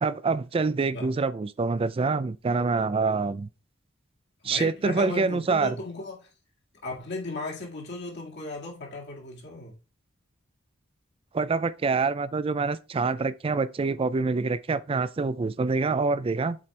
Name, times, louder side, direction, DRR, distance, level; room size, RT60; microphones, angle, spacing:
voice 1, 0.0-3.5 4.4-5.8 11.3-16.6, right 4 dB, 30° right, 0.3 m, -26 dB
voice 2, 4.4-6.3 6.8-9.7, left 2 dB, 60° left, 1.9 m, -36 dB
7.4 x 4.3 x 3.2 m
head